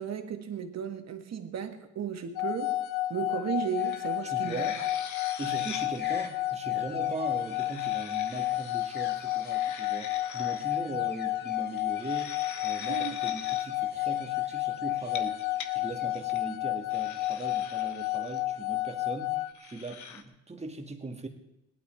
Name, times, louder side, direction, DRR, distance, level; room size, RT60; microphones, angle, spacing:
voice 1, 0.0-4.9 12.9-13.2, right 8 dB, 60° right, 1.8 m, -35 dB
sound 1, 2.4-19.5, left 15 dB, 85° left, 0.7 m, -31 dB
sound 2, 3.8-16.2, left 3 dB, 35° left, 2.2 m, -52 dB
sound 3, 3.9-4.0 4.3-6.0 7.3-10.6 11.8-13.6 15.0-15.7 16.1-16.4 16.9-18.4 19.5-20.2, left 7 dB, 70° left, 1.4 m, -43 dB
voice 2, 4.2-4.8 5.4-15.4 15.7-21.3, right 3 dB, 20° right, 2.2 m, -40 dB
17.5 x 12.0 x 4.6 m
cardioid pair, 90°, 30 cm